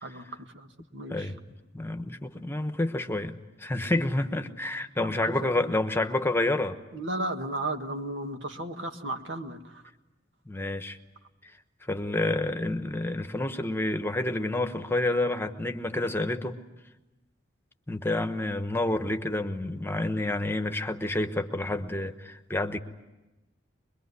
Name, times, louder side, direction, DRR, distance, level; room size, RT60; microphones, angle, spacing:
voice 1, 0.0-1.3 5.0-5.7 6.9-9.8, right 2 dB, 90° right, 5 dB, 2.0 m, -35 dB
voice 2, 1.7-6.8 10.5-11.0 11.4-11.5 11.8-16.6 17.9-22.8, left 2 dB, 15° left, 7 dB, 1.1 m, -29 dB
24.0 x 22.5 x 9.7 m, 1.0 s
head